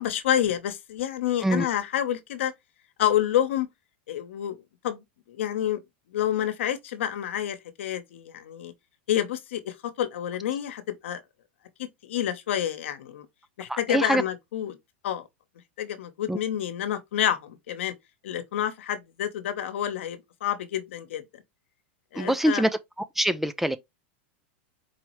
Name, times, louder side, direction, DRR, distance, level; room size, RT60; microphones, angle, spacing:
voice 1, 0.0-2.5 3.0-3.7 4.1-4.6 4.8-5.8 6.1-8.7 9.1-11.2 11.8-13.3 13.6-14.8 15.0-15.2 15.8-17.9 18.2-21.2 22.1-22.6, left 11 dB, 80° left, 1.0 m, -28 dB
voice 2, 13.7-14.2 16.3-16.4 22.1-22.8 23.2-23.8, right 1 dB, 5° right, 0.3 m, -24 dB
4.6 x 3.0 x 3.0 m
supercardioid pair, 135°, 6 cm